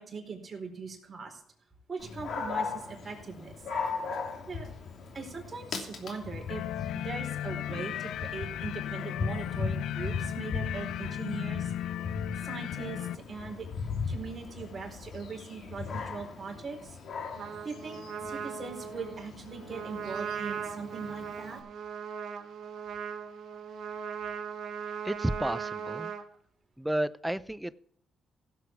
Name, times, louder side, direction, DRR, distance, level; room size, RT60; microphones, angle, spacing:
voice 1, 0.0-1.4 1.9-3.6 4.5-4.7 5.1-6.6 6.9-11.7 12.4-13.7 14.1-17.0 17.6-21.6, right 5 dB, 35° right, 2 dB, 4.3 m, -40 dB
Dog, 2.0-21.6, left 5 dB, 60° left, 2.9 m, -38 dB
sound 1, 6.5-13.2, left 12 dB, 85° left, 0.4 m, -36 dB
Trumpet, 17.4-26.2, right 7 dB, 65° right, 2.1 m, -38 dB
voice 2, 25.0-26.1 26.8-27.7, right 1 dB, 5° right, 16 dB, 0.6 m, -31 dB
16.5 x 8.0 x 4.7 m, 0.66 s
cardioid pair, 90°, 0 cm